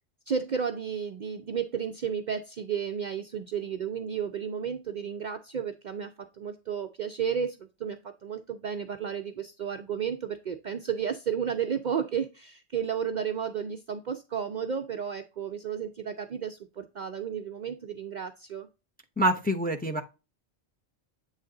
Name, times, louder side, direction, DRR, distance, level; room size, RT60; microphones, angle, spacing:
voice 1, 0.3-18.7, right 7 dB, 55° right, 7 dB, 0.5 m, -33 dB
voice 2, 19.2-20.0, right 1 dB, 10° left, 4 dB, 0.6 m, -26 dB
7.8 x 3.2 x 3.7 m, 0.29 s
omnidirectional pair, 1.1 m